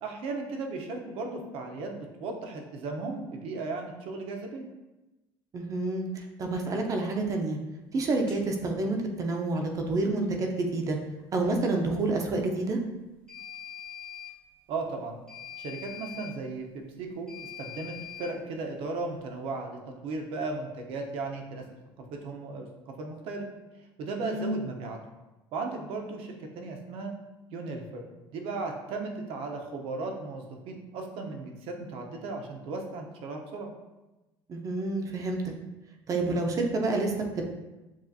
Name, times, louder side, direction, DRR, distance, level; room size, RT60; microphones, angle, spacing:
voice 1, 0.0-4.7 14.7-15.2 15.6-21.6 22.0-23.5 24.0-25.0 25.5-27.1 27.5-33.7, right 3 dB, 65° right, 3 dB, 0.8 m, -36 dB
voice 2, 5.5-7.6 7.9-11.0 11.3-12.8 24.2-24.5 34.5-35.4 36.1-37.5, right 2 dB, 35° right, 3 dB, 0.6 m, -28 dB
sound 1, 8.3-8.4 13.3-14.4 15.3-16.4 17.3-18.4, left 10 dB, 10° left, 0.9 m, -43 dB
7.3 x 2.5 x 2.7 m, 1.1 s
cardioid pair, 145°, 10 cm